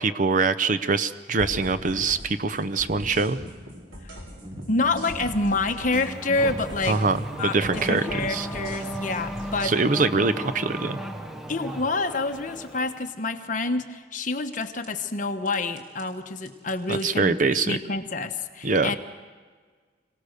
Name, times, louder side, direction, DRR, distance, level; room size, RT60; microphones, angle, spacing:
voice 1, 0.0-3.4 6.9-8.5 9.6-11.0 16.9-17.8 18.6-18.9, right 4 dB, 45° right, 12 dB, 0.7 m, -24 dB
sound 1, 1.4-2.3 2.5-6.1 6.3-9.7 14.5-14.9 15.5-16.0 16.4-17.0, equal, 85° right, 4.8 m, -41 dB
sound 2, 1.6-7.2, equal, 20° right, 1.8 m, -43 dB
voice 2, 4.7-7.0 7.4-9.7 11.5-17.4 17.7-19.0, left 3 dB, 45° left, 7 dB, 1.2 m, -27 dB
Race car auto racing / Accelerating revving vroom, 5.9-13.1, equal, 5° right, 1.0 m, -35 dB
26.0 x 17.5 x 6.6 m, 1.5 s
head